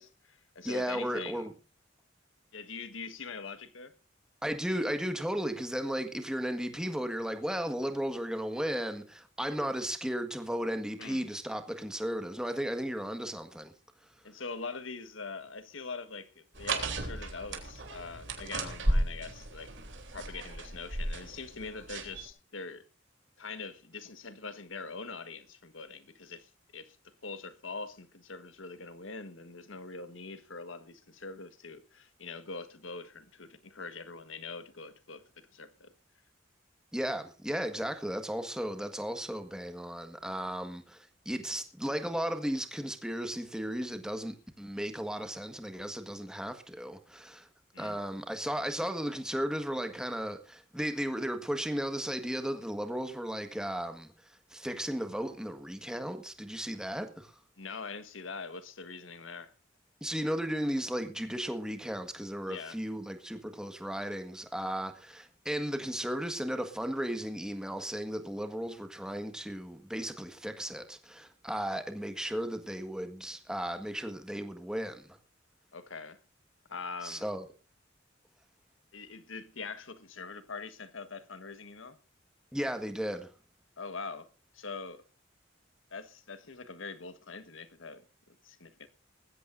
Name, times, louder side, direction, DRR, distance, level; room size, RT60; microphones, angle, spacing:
voice 1, 0.0-1.5 2.5-3.9 10.9-11.3 14.2-19.7 20.1-22.9 23.4-35.9 47.7-48.0 57.6-59.5 62.5-62.8 75.7-76.2 76.7-77.3 78.9-82.0 83.8-84.3 84.5-85.0 85.9-88.9, left 4 dB, 85° left, 1.5 m, -43 dB
voice 2, 0.6-1.5 4.4-13.7 36.9-47.5 47.8-54.1 54.5-57.3 60.0-75.2 77.0-77.4 82.5-83.3, equal, 5° right, 1.6 m, -35 dB
sound 1, 16.5-22.3, right 1 dB, 70° right, 3.4 m, -34 dB
20.0 x 15.5 x 2.6 m
head